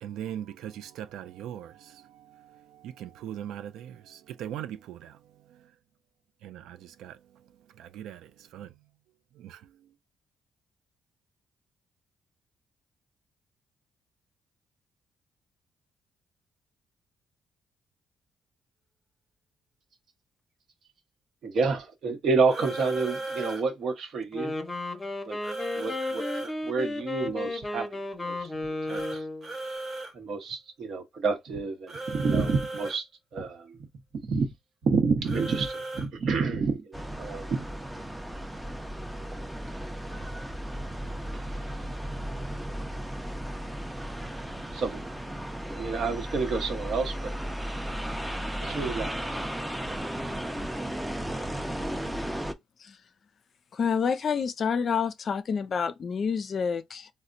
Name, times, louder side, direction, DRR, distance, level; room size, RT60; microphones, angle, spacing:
voice 1, 0.0-5.2 6.4-7.2 7.8-8.2 8.5-8.7 9.4-9.6, right 10 dB, 85° right, 0.3 m, -40 dB
voice 2, 21.4-24.5 25.3-25.4 25.7-27.9 28.2-28.5 28.9-29.2 30.1-33.1 33.3-33.8 34.2-34.5 34.8-37.6 41.3-41.4 44.7-45.4 45.7-47.3 48.6-49.3, right 4 dB, 65° right, 0.9 m, -29 dB
sound 1, 22.5-23.6 25.4-26.5 28.9-30.1 31.9-33.0 35.2-36.1, right 2 dB, 40° right, 1.0 m, -36 dB
Wind instrument woodwind instrument, 24.2-29.5, left 2 dB, 20° left, 0.8 m, -34 dB
sound 2, 36.9-52.5, right 1 dB, 5° right, 0.5 m, -35 dB
voice 3, 53.7-57.1, left 6 dB, 50° left, 0.4 m, -28 dB
4.1 x 2.1 x 2.5 m
cardioid pair, 90°, 0 cm